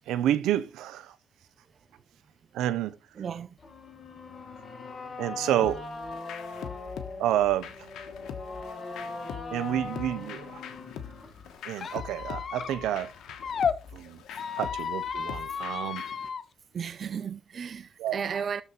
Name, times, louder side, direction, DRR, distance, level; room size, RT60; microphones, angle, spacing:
voice 1, 0.1-1.2 2.5-3.0 5.2-5.9 7.2-7.9 9.5-10.6 11.6-13.1 13.9-14.2 14.6-16.0 18.0-18.1, right 12 dB, 85° right, 0.7 m, -29 dB
voice 2, 3.2-3.6 16.7-18.6, right 7 dB, 50° right, 0.5 m, -34 dB
sound 1, 3.6-11.6, left 4 dB, 35° left, 4.3 m, -40 dB
lo-fi idm, 5.6-16.3, left 8 dB, 80° left, 1.2 m, -43 dB
Squeak, 11.8-13.8 14.3-16.4, left 6 dB, 50° left, 0.7 m, -33 dB
12.5 x 4.2 x 4.2 m
cardioid pair, 90°, 0 cm